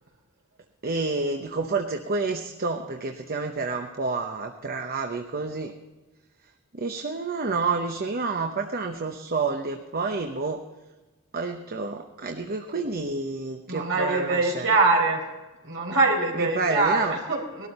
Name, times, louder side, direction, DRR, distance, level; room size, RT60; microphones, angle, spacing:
voice 1, 0.8-5.7 6.7-10.6 11.3-14.7 16.3-17.1, right 4 dB, 45° right, 5 dB, 0.9 m, -29 dB
voice 2, 13.7-15.2 15.6-17.7, right 3 dB, 60° right, 1 dB, 4.4 m, -23 dB
19.5 x 12.5 x 4.2 m, 1.2 s
head